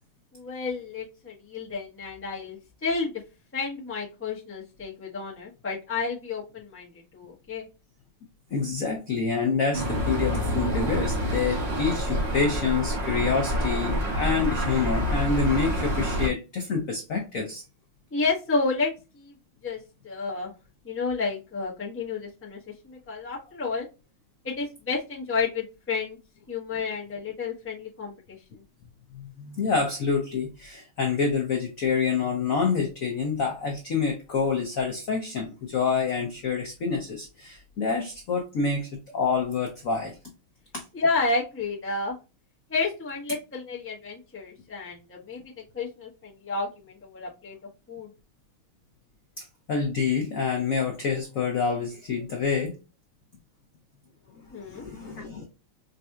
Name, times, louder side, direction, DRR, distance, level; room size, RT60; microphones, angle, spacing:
voice 1, 0.3-3.1 3.5-7.7 18.1-19.3 19.6-19.8 20.0-20.5 20.8-22.6 22.8-23.9 24.4-26.2 26.5-28.1 40.9-42.1 42.7-45.4 45.7-47.5 47.9-48.1 54.5-54.8, left 4 dB, 10° left, -4 dB, 0.7 m, -31 dB
voice 2, 8.5-17.6 29.1-40.2 40.7-40.8 49.4-52.7 54.5-55.4, left 5 dB, 70° left, 2 dB, 0.8 m, -27 dB
sound 1, 9.7-16.3, equal, 35° right, 1.2 m, -27 dB
5.2 x 2.7 x 2.3 m, 0.28 s
omnidirectional pair, 2.4 m